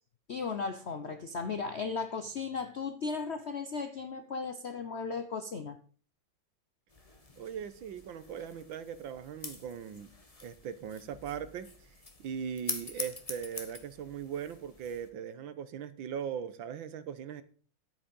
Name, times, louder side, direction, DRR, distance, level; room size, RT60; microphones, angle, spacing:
voice 1, 0.3-5.8, left 4 dB, 65° left, 8 dB, 0.6 m, -36 dB
sound 1, 6.9-15.1, left 3 dB, 20° left, 1.2 m, -45 dB
voice 2, 7.4-10.1 10.4-11.7 12.2-17.4, right 8 dB, 75° right, 13 dB, 1.7 m, -39 dB
10.5 x 8.6 x 5.3 m, 0.43 s
omnidirectional pair, 2.1 m